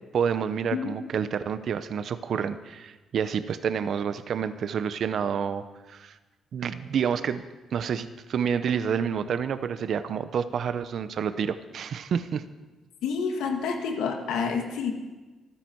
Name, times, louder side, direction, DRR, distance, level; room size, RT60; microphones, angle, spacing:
voice 1, 0.1-6.1 6.5-7.4 7.7-12.4, right 7 dB, 60° right, 12 dB, 0.8 m, -29 dB
voice 2, 13.0-14.9, left 5 dB, 85° left, 3 dB, 2.1 m, -28 dB
25.5 x 9.9 x 4.7 m, 1.2 s
cardioid pair, 90°, 0 cm